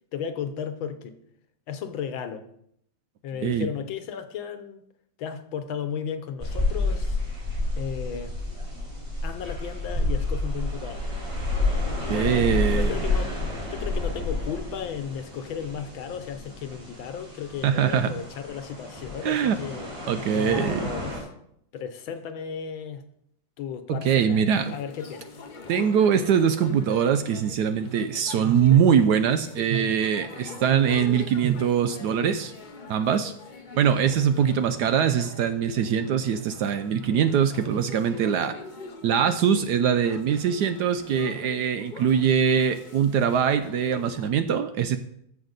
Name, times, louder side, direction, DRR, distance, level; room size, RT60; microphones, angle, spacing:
voice 1, 0.1-1.2 1.7-2.5 3.2-4.8 5.2-7.2 7.8-8.3 9.2-11.0 12.1-13.4 13.7-19.9 20.3-21.3 21.7-23.0 23.6-25.3, left 7 dB, 85° left, 1.7 m, -34 dB
sound 1, 6.4-21.2, left 2 dB, 30° right, 4.6 m, -30 dB
voice 2, 12.1-12.9 17.6-18.1 19.2-19.6 20.1-20.8 23.9-24.7 25.7-32.5 32.9-33.3 33.7-38.5 39.0-45.0, right 8 dB, 75° right, 1.0 m, -22 dB
sound 2, 24.5-44.3, left 4 dB, 55° left, 0.5 m, -44 dB
14.0 x 5.9 x 4.0 m
omnidirectional pair, 2.1 m